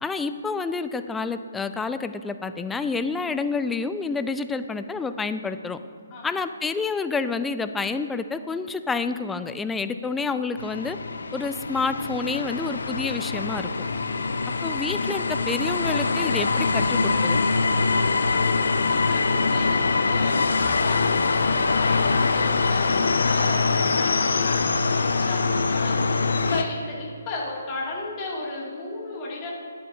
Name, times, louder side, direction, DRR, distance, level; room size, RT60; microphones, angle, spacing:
voice 1, 0.0-5.8 6.2-11.0 11.3-13.7 14.6-17.4, left 4 dB, 5° left, 10 dB, 0.3 m, -28 dB
sound 1, 10.6-26.6, left 4 dB, 65° left, 0.5 m, -23 dB
voice 2, 18.9-26.2 26.5-29.5, left 2 dB, 25° left, -4 dB, 2.3 m, -35 dB
12.5 x 9.3 x 2.7 m, 2.2 s
figure-of-eight pair, 135°, 0 cm